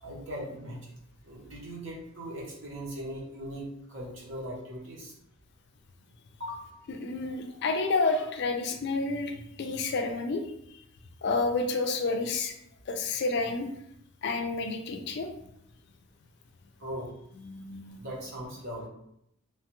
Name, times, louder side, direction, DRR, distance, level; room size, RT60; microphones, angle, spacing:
voice 1, 0.0-0.9 1.2-5.1 6.4-6.7 7.5-7.6 16.8-17.1 18.0-18.9, equal, 60° right, -4 dB, 0.9 m, -39 dB
voice 2, 7.0-9.3 9.6-10.4 11.2-12.5 12.9-13.7 14.2-15.3 17.4-18.0, left 3 dB, 55° left, 5 dB, 0.3 m, -29 dB
3.2 x 2.2 x 2.9 m, 0.76 s
head